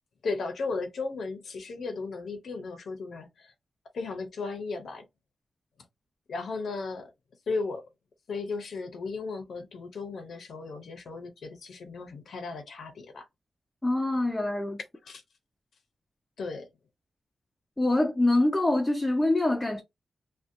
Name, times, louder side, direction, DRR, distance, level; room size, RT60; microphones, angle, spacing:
voice 1, 0.2-3.5 3.9-5.0 6.3-7.1 7.5-7.9 8.3-13.3 15.0-15.2 16.4-16.7, left 4 dB, 75° left, 0.5 m, -35 dB
voice 2, 13.8-14.8 17.8-19.8, left 2 dB, 10° left, 0.4 m, -25 dB
2.5 x 2.0 x 2.4 m
wide cardioid pair, 110°, 0 cm